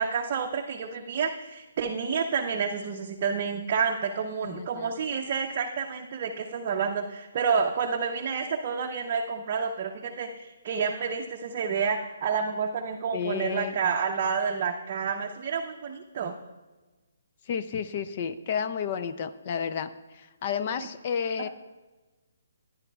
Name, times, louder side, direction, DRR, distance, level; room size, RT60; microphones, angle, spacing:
voice 1, 0.0-16.3, right 6 dB, 35° right, 2 dB, 0.6 m, -29 dB
voice 2, 4.4-5.0 13.1-13.8 17.5-21.5, left 7 dB, 35° left, 12 dB, 0.4 m, -31 dB
14.5 x 10.0 x 2.3 m, 1.2 s
hypercardioid pair, 165°, 0 cm